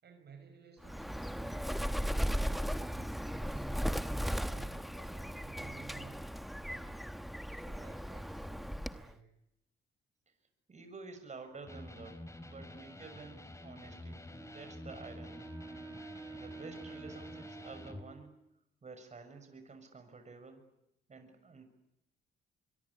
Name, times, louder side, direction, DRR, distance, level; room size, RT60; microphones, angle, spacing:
voice 1, 0.0-3.7 4.1-6.3 6.6-9.3, right 5 dB, 55° right, 6 dB, 5.8 m, -56 dB
Bird, 0.8-9.1, equal, ahead, 1.0 m, -37 dB
voice 2, 10.7-15.5 16.3-18.3 18.8-20.6 21.1-21.6, right 4 dB, 35° right, 7 dB, 6.4 m, -50 dB
Electric guitar, 11.6-18.1, left 1 dB, 15° left, 3.8 m, -49 dB
Wind instrument woodwind instrument, 14.3-18.5, right 3 dB, 15° right, 5.5 m, -49 dB
25.0 x 22.5 x 9.9 m, 0.86 s
cardioid pair, 90°, 20 cm